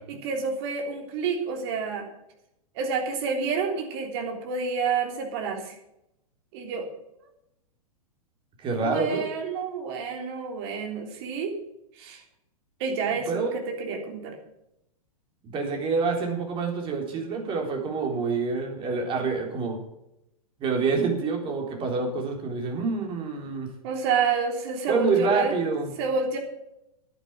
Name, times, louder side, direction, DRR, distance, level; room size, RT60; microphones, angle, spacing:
voice 1, 0.1-2.1 2.7-5.8 6.5-6.9 8.8-11.6 12.0-12.2 12.8-14.3 23.8-25.5 26.0-26.4, right 5 dB, 45° right, 2 dB, 3.4 m, -29 dB
voice 2, 8.6-9.3 13.3-13.5 15.4-19.8 20.6-23.7 24.9-25.9, right 4 dB, 25° right, 2 dB, 3.8 m, -27 dB
11.0 x 9.5 x 7.4 m, 0.84 s
figure-of-eight pair, 105°, 19 cm